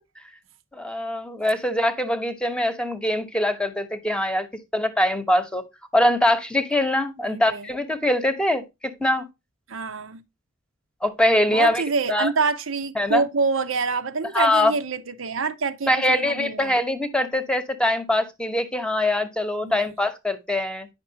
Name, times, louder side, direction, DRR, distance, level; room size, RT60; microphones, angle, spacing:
voice 1, 0.7-4.5 4.7-5.6 5.9-9.3 11.0-11.8 12.1-12.3 13.0-13.2 14.3-14.7 15.9-20.9, left 1 dB, 5° left, 1.0 m, -23 dB
voice 2, 7.2-7.7 9.7-10.2 11.5-16.7 19.6-19.9, right 4 dB, 80° right, 0.8 m, -26 dB
9.6 x 6.0 x 2.8 m
head